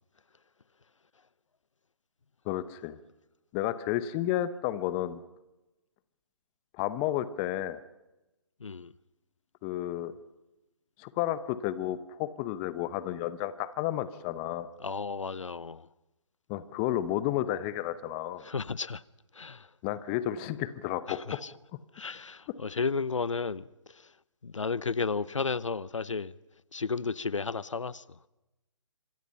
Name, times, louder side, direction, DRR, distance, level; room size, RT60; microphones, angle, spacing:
voice 1, 2.5-3.0 3.5-5.2 6.7-7.8 9.6-10.1 11.0-14.7 16.5-18.4 19.8-21.2, left 13 dB, 20° left, 0.9 m, -31 dB
voice 2, 8.6-8.9 14.8-15.9 18.4-19.0 19.3-19.7 21.1-21.5 21.9-24.1 24.4-26.3 26.7-28.2, left 4 dB, 75° left, 0.8 m, -33 dB
27.0 x 25.5 x 5.7 m
figure-of-eight pair, 145°, 16 cm